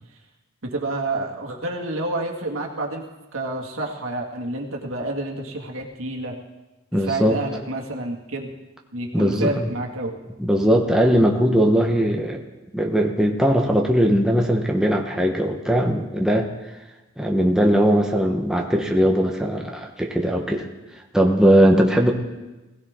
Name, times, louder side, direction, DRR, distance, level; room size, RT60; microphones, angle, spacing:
voice 1, 0.6-3.1 3.3-6.4 6.9-8.5 8.9-10.2, right 2 dB, 70° right, 0 dB, 2.2 m, -29 dB
voice 2, 6.9-7.4 9.1-9.7 10.4-12.4 12.7-16.5 17.2-20.7 21.1-22.1, equal, 5° right, 0 dB, 1.1 m, -19 dB
21.0 x 16.5 x 3.7 m, 1.1 s
head